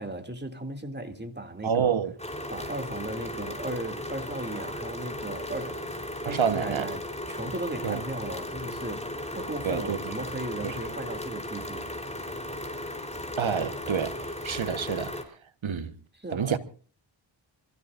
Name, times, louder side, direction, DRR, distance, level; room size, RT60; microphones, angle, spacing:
voice 1, 0.0-2.0 2.5-6.0 6.2-11.8 16.2-16.6, right 2 dB, 20° right, 2.8 m, -36 dB
voice 2, 1.6-2.1 6.2-6.9 7.8-8.0 9.6-10.0 10.6-10.8 13.4-15.2 15.6-15.9 16.3-16.6, right 7 dB, 75° right, 1.4 m, -28 dB
sound 1, 2.2-15.2, left 1 dB, 15° left, 3.8 m, -36 dB
27.0 x 15.5 x 2.6 m
wide cardioid pair, 65°, 48 cm